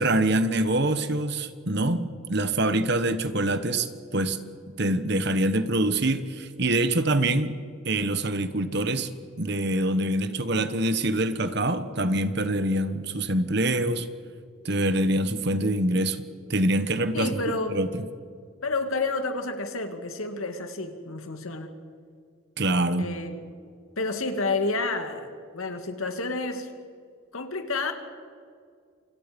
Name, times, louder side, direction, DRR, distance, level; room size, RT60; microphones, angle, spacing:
voice 1, 0.0-4.4 4.8-7.6 7.8-9.1 9.4-14.1 14.6-16.2 16.5-17.4 17.7-18.0 22.6-23.1, right 1 dB, 55° right, 11 dB, 1.4 m, -25 dB
voice 2, 17.1-17.8 18.6-21.7 23.0-23.4 24.0-25.3 25.5-26.7 27.3-27.9, left 3 dB, 90° left, 6 dB, 2.5 m, -30 dB
28.5 x 26.0 x 5.4 m, 2.2 s
head